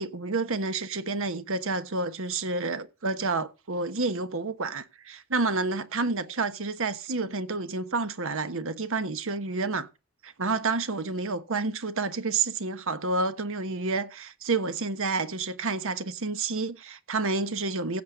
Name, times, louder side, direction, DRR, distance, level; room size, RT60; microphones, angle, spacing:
voice 1, 0.0-9.9 10.2-18.0, right 3 dB, 65° right, 1.2 m, -29 dB
16.0 x 7.0 x 3.9 m
head